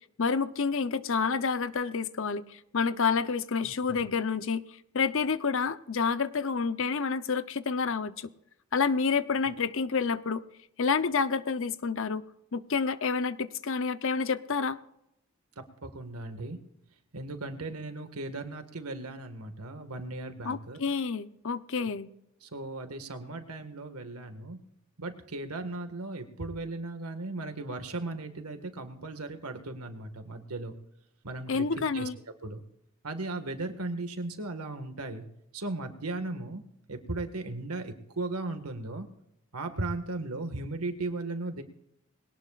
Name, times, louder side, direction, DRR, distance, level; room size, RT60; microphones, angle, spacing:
voice 1, 0.2-4.6 4.9-8.3 8.7-10.4 10.8-12.2 12.5-14.8 20.4-22.1 31.5-32.2, left 5 dB, 60° left, 13 dB, 0.8 m, -29 dB
voice 2, 3.6-4.0 15.6-16.6 17.1-20.8 21.8-21.9 22.4-24.6 25.0-30.7 31.2-31.7 31.9-32.1 32.4-32.6 33.0-35.2 35.5-36.6 36.9-39.1 39.5-41.6, right 2 dB, 90° right, 7 dB, 1.8 m, -37 dB
21.5 x 18.0 x 2.5 m, 0.80 s
head